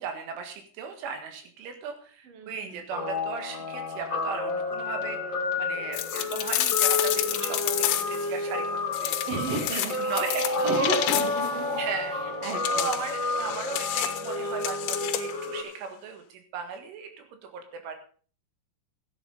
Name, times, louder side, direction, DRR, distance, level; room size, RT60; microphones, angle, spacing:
voice 1, 0.0-9.2 9.7-10.8 11.8-12.1 12.7-18.0, right 6 dB, 75° right, 6 dB, 4.0 m, -37 dB
voice 2, 2.3-2.8 9.3-10.1 10.4-11.8 12.4-12.9, right 3 dB, 45° right, 4 dB, 2.3 m, -32 dB
Guitar, 2.9-15.6, left 3 dB, 35° left, 1.9 m, -30 dB
sound 1, 5.9-8.3 8.9-11.6 12.4-15.5, left 13 dB, 75° left, 2.9 m, -30 dB
14.0 x 9.7 x 5.2 m, 0.42 s
omnidirectional pair, 5.8 m